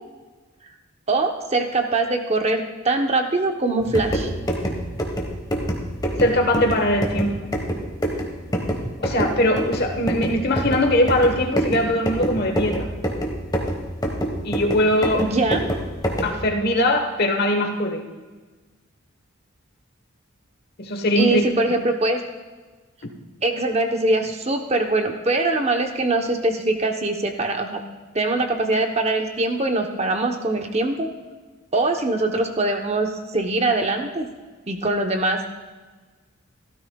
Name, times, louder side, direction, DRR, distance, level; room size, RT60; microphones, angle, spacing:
voice 1, 1.1-4.3 15.2-15.6 21.2-22.2 23.4-27.8 28.1-31.1 31.7-34.3 34.7-35.5, right 2 dB, 30° right, 4 dB, 0.9 m, -22 dB
sound 1, 3.8-16.4, equal, 20° left, 1.3 m, -27 dB
voice 2, 6.2-7.5 9.0-12.9 14.4-15.3 16.2-18.0 20.8-21.5, left 1 dB, 50° left, 4 dB, 1.2 m, -21 dB
16.0 x 13.0 x 2.3 m, 1.3 s
head